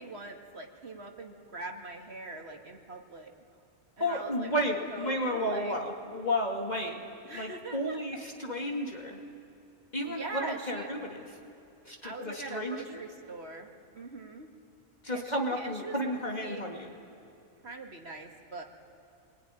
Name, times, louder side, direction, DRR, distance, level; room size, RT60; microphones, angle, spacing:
voice 1, 0.0-3.3 4.0-5.7 7.2-8.0 10.0-10.9 12.0-14.5 15.1-16.0 16.4-16.8 17.6-18.6, right 2 dB, 60° right, 2 dB, 2.4 m, -42 dB
voice 2, 4.0-7.0 7.3-9.2 9.9-11.3 11.9-13.0 15.0-16.9, equal, 40° left, 0 dB, 2.4 m, -32 dB
26.5 x 22.5 x 10.0 m, 2.6 s
omnidirectional pair, 1.2 m